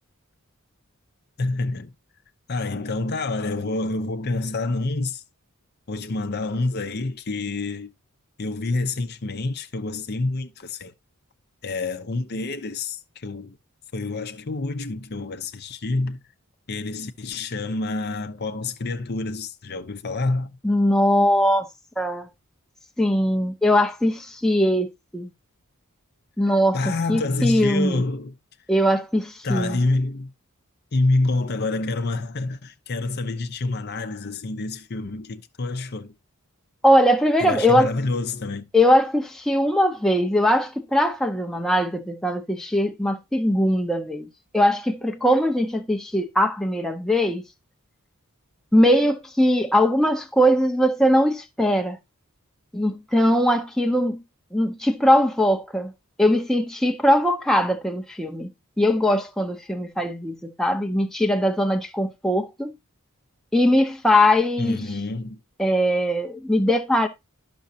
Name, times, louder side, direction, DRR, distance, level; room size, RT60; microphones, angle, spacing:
voice 1, 1.4-1.9 2.5-5.2 5.9-7.9 8.4-10.9 11.6-13.6 13.9-16.2 16.7-20.6 26.7-28.3 29.4-30.3 30.9-36.1 37.4-38.7 64.6-65.4, left 2 dB, 45° left, 0.6 m, -27 dB
voice 2, 20.6-21.7 22.0-22.3 23.0-25.3 26.4-26.8 27.1-28.0 28.7-29.8 36.8-37.9 38.7-44.3 44.5-47.4 48.7-52.0 52.7-54.2 54.5-55.9 56.2-58.5 58.8-62.7 63.5-64.8 65.6-67.1, equal, ahead, 0.7 m, -20 dB
11.5 x 6.1 x 2.8 m
head